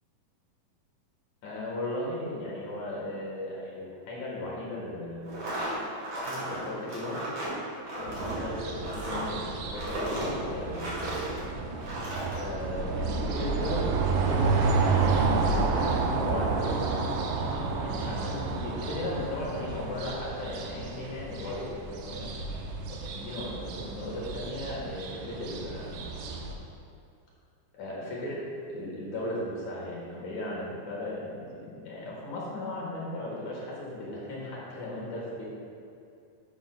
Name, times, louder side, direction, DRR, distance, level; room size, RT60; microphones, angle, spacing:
voice 1, 1.4-5.3 6.2-7.2 7.9-11.2 12.4-16.9 17.6-22.3 22.9-26.0 27.7-28.3 28.7-35.4, left 1 dB, 60° left, -5 dB, 2.4 m, -36 dB
sound 1, 5.2-11.4 11.8-12.4, right 1 dB, 55° right, 3.1 m, -35 dB
sound 2, 8.1-26.5, right 4 dB, 80° right, 2.2 m, -30 dB
11.0 x 7.4 x 2.2 m, 2.6 s
omnidirectional pair, 4.0 m